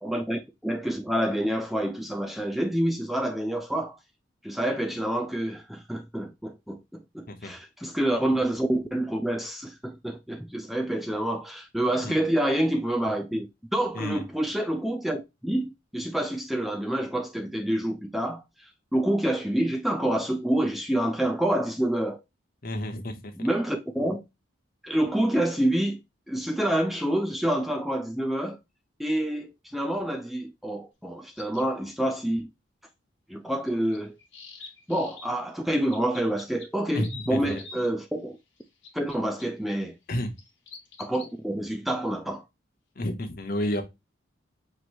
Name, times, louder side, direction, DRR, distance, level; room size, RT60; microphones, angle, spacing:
voice 1, 0.0-4.0 4.4-13.5 13.7-22.2 23.4-24.2 24.8-26.0 26.3-28.6 29.0-32.5 33.3-34.1 34.9-38.4 38.9-39.9 41.0-42.4, right 1 dB, ahead, 0.3 m, -27 dB
voice 2, 13.9-14.3 22.6-23.3 36.9-37.6 40.1-40.3 43.0-43.8, left 1 dB, 45° left, 0.8 m, -30 dB
sound 1, 31.4-31.7 33.6-35.2 35.9-37.9 38.6-39.4 40.1-41.3, left 5 dB, 65° left, 1.3 m, -45 dB
5.8 x 3.1 x 2.5 m
head